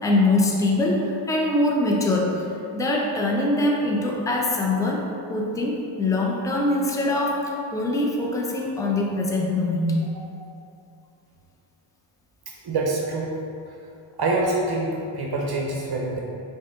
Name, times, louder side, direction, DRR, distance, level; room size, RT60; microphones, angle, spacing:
voice 1, 0.0-2.4 2.7-10.0, left 2 dB, 5° left, -2 dB, 0.5 m, -23 dB
voice 2, 12.6-13.4 14.2-16.2, right 2 dB, 50° right, -2 dB, 0.7 m, -25 dB
4.8 x 2.7 x 3.6 m, 2.6 s
cardioid pair, 75°, 49 cm